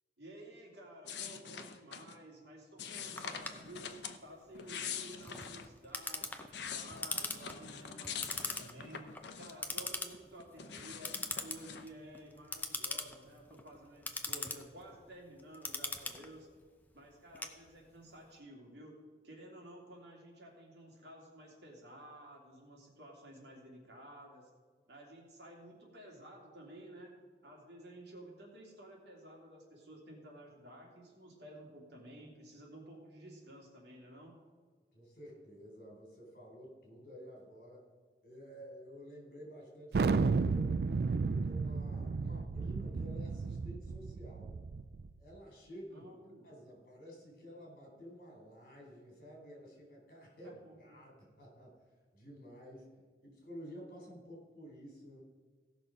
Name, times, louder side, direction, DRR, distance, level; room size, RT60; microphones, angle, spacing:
voice 1, 0.2-9.0 9.4-16.5 16.9-19.0 19.2-24.5 24.9-34.4 45.9-46.5 50.4-51.0, right 1 dB, 75° right, -1 dB, 2.8 m, -53 dB
sound 1, 1.1-2.2 2.8-4.2 4.5-5.7 6.2-9.8 10.1-11.9, left 7 dB, 80° left, 0.8 m, -44 dB
Clock, 3.2-18.1, left 3 dB, 10° left, 0.6 m, -42 dB
voice 2, 34.9-37.9 38.2-40.8 41.2-44.5 45.2-46.1 46.4-51.8 52.1-52.9 53.2-55.2, equal, 50° left, -1 dB, 3.7 m, -52 dB
Thunder, 39.9-45.1, right 4 dB, 60° right, 0.4 m, -33 dB
16.5 x 6.0 x 5.1 m, 1.5 s
head